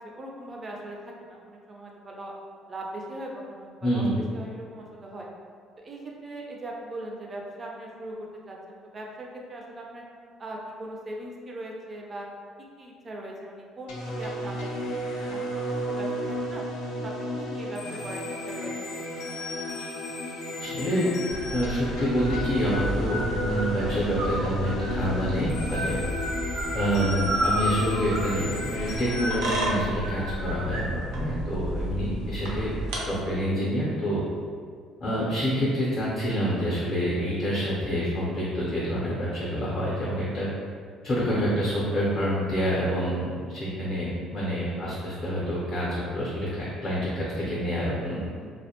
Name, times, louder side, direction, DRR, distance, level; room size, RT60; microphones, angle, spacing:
voice 1, 0.0-2.3 2.7-4.1 4.3-5.3 5.8-10.0 10.4-12.3 12.8-16.6 17.0-19.0 48.4-48.5, right 1 dB, 25° right, -1 dB, 0.4 m, -40 dB
voice 2, 3.8-4.2 20.6-21.1 21.5-26.0 26.7-32.8 33.1-34.2 35.0-40.5 41.0-46.5 46.8-48.2, equal, 30° left, -7 dB, 0.5 m, -27 dB
sound 1, 13.9-29.4, equal, 85° left, 0.4 m, -33 dB
sound 2, 21.3-33.0, right 1 dB, 85° right, 0.6 m, -31 dB
2.4 x 2.1 x 2.8 m, 2.1 s
cardioid pair, 140°, 0 cm